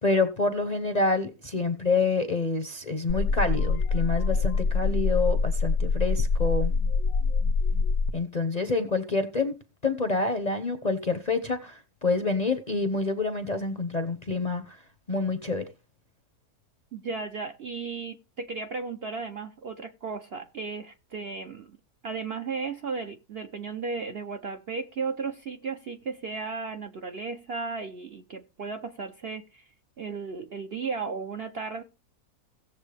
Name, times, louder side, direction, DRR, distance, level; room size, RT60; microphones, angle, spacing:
voice 1, 0.0-6.7 8.1-9.6 9.8-14.8 15.1-15.6, left 3 dB, 35° left, 0.7 m, -27 dB
sound 1, 3.1-8.1, left 4 dB, 70° left, 1.1 m, -25 dB
voice 2, 16.9-21.8 22.0-29.6 30.0-31.8, right 4 dB, 50° right, 0.8 m, -35 dB
17.0 x 7.3 x 3.4 m
omnidirectional pair, 1.7 m